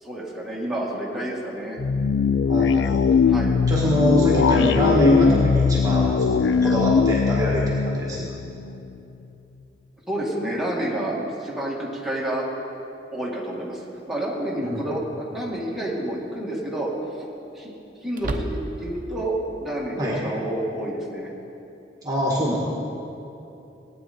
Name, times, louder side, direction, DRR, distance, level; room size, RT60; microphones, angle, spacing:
voice 1, 0.0-1.8 3.3-3.6 10.1-12.4 13.1-13.8 14.1-16.9 17.5-17.7 18.0-21.3, right 1 dB, ahead, -5 dB, 1.9 m, -29 dB
sound 1, 1.8-9.0, left 5 dB, 80° left, 0.3 m, -20 dB
voice 2, 2.5-3.2 3.7-8.3 14.6-14.8 20.0-20.2 22.0-22.6, equal, 20° right, -4 dB, 1.6 m, -24 dB
sound 2, 13.5-13.6 15.4-15.9 16.2-16.3 18.1-19.0, right 1 dB, 50° right, 0.8 m, -32 dB
18.0 x 8.9 x 4.3 m, 2.8 s
head